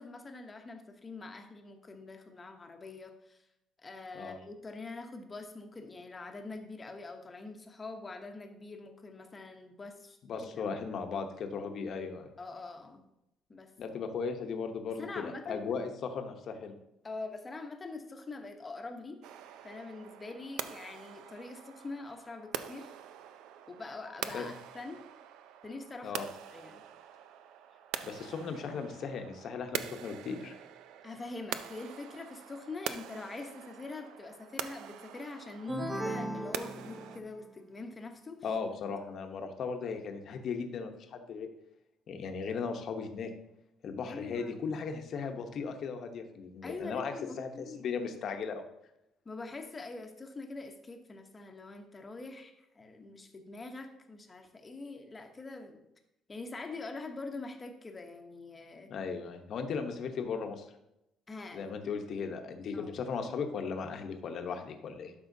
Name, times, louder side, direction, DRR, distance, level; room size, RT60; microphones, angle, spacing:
voice 1, 0.0-3.5 3.8-10.7 12.4-13.1 13.5-13.7 14.9-15.7 17.0-19.2 19.6-22.9 23.7-25.0 25.6-26.1 26.5-26.8 31.0-38.4 44.1-44.6 46.6-47.8 49.2-55.8 56.3-58.9 61.3-61.8 62.7-62.9, left 3 dB, 20° left, 5 dB, 0.9 m, -44 dB
voice 2, 10.3-12.3 13.8-16.7 24.3-24.5 26.0-26.3 28.0-30.6 38.4-41.5 42.1-43.3 43.8-48.6 58.9-60.7 61.5-65.1, left 5 dB, 50° left, 5 dB, 0.9 m, -37 dB
sound 1, 19.2-37.2, right 10 dB, 85° right, 0.4 m, -44 dB
sound 2, 35.7-37.5, right 1 dB, 20° right, 0.9 m, -37 dB
12.0 x 5.5 x 2.7 m, 0.86 s
cardioid pair, 145°, 0 cm